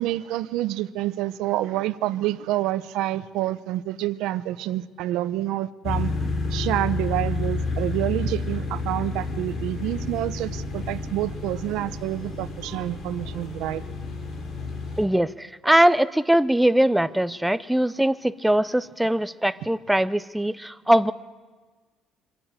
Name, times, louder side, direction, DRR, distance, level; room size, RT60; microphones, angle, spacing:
voice 1, 0.0-6.1 6.5-13.8, right 14 dB, 85° right, 12 dB, 0.8 m, -28 dB
sound 1, 5.8-15.0, left 3 dB, 45° left, 4.0 m, -30 dB
voice 2, 15.0-21.1, right 1 dB, 5° right, 14 dB, 0.6 m, -21 dB
24.5 x 13.0 x 8.9 m, 1.4 s
cardioid pair, 155°, 0 cm